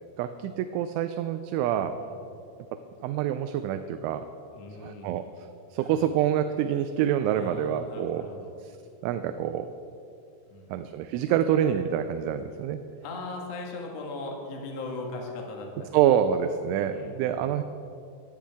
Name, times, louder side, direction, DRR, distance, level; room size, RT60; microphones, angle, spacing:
voice 1, 0.2-2.0 3.0-4.2 4.8-5.2 5.7-8.3 8.6-8.7 9.0-9.7 10.7-12.8 15.9-17.6, right 10 dB, 85° right, 9 dB, 2.9 m, -26 dB
voice 2, 4.5-5.1 7.3-8.5 10.5-10.8 13.0-15.9 16.7-17.5, left 2 dB, 70° left, 0 dB, 1.6 m, -39 dB
19.0 x 12.5 x 3.5 m, 2.6 s
omnidirectional pair, 5.6 m